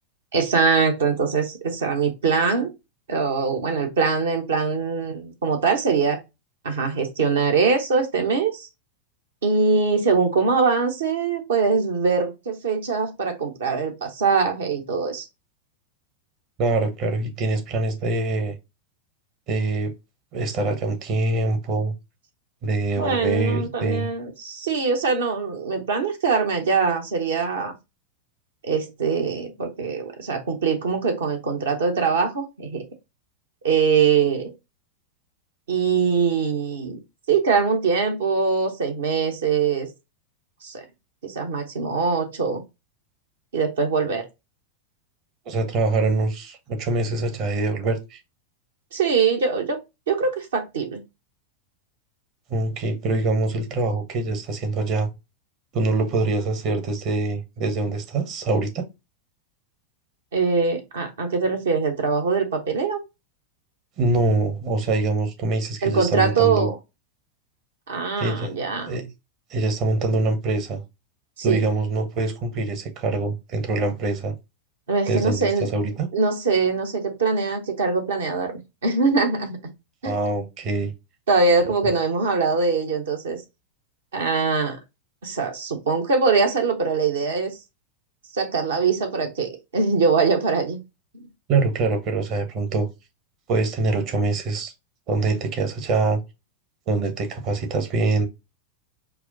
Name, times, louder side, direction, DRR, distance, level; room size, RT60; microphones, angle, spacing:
voice 1, 0.3-2.7 3.1-6.2 6.6-8.7 9.4-15.3 23.0-27.7 28.6-32.8 33.6-34.5 35.7-37.0 37.3-39.9 40.6-40.8 41.2-42.6 43.5-44.2 48.9-49.8 50.1-51.0 60.3-63.0 65.8-66.7 67.9-68.9 71.4-71.6 74.9-75.7 76.1-79.6 80.0-80.2 81.3-83.4 84.1-84.8 85.2-87.6 88.3-90.8 91.1-91.2, right 5 dB, 65° right, 1.1 m, -22 dB
voice 2, 16.6-18.6 19.5-19.9 20.3-21.9 22.6-24.1 45.5-48.2 52.5-55.1 55.7-58.9 64.0-66.7 68.2-68.5 68.9-69.1 69.5-70.8 71.4-74.3 75.1-76.1 80.0-80.9 91.5-92.9 93.5-94.7 95.1-96.2 96.9-98.3, right 3 dB, 40° right, 1.0 m, -24 dB
4.7 x 2.2 x 3.9 m
figure-of-eight pair, 90°, 0 cm